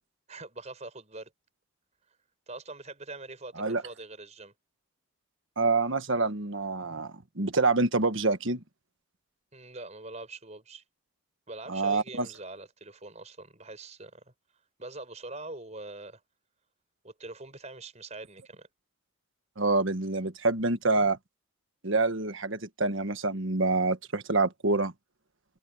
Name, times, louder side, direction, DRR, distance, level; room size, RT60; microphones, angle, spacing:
voice 1, 0.3-1.3 2.5-4.5 9.5-10.8 11.5-14.3 14.8-16.2 17.0-18.7, right 2 dB, 30° right, 5.1 m, -43 dB
voice 2, 5.6-8.6 11.7-12.3 19.6-21.2 21.8-24.9, right 3 dB, 60° right, 1.5 m, -27 dB
head